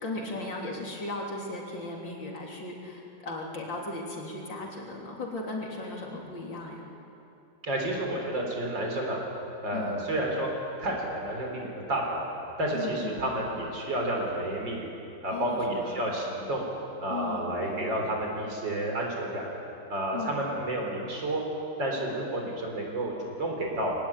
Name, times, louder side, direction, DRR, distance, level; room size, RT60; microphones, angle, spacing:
voice 1, 0.0-6.9 9.7-10.0 12.7-13.2 15.3-16.1 17.1-17.9 20.1-20.4, left 2 dB, 70° left, -1 dB, 3.9 m, -37 dB
voice 2, 7.6-9.2 9.6-10.5 10.8-12.3 12.6-14.9 15.2-16.6 17.0-19.5 19.9-21.4 21.8-23.9, right 1 dB, 65° right, 0 dB, 4.8 m, -30 dB
21.5 x 17.5 x 10.0 m, 2.8 s
omnidirectional pair, 2.1 m